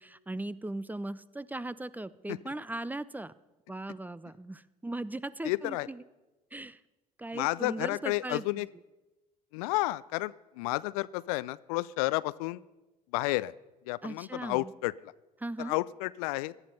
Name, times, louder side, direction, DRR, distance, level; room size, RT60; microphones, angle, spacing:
voice 1, 0.0-3.3 3.7-6.0 6.5-6.8 7.2-8.7 14.0-14.7 15.4-15.8, right 2 dB, 10° right, 18 dB, 0.5 m, -38 dB
voice 2, 5.4-5.9 7.3-8.7 9.5-12.6 13.1-13.5 13.9-14.9 15.6-16.5, left 20 dB, 65° left, 20 dB, 0.4 m, -31 dB
17.5 x 11.5 x 5.5 m, 1.1 s
figure-of-eight pair, 55°, 20 cm